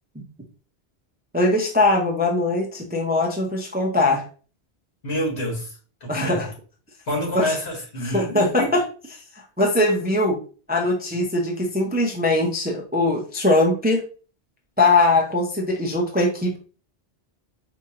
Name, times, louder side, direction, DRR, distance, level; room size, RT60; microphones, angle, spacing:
voice 1, 1.3-4.2 6.1-6.5 7.3-7.6 8.0-8.6 9.3-10.4 10.7-14.0 14.8-16.6, left 2 dB, 15° right, 0 dB, 0.4 m, -21 dB
voice 2, 5.0-6.5 7.0-8.8, equal, 75° left, 0 dB, 1.6 m, -28 dB
4.4 x 2.5 x 2.8 m, 0.39 s
omnidirectional pair, 1.1 m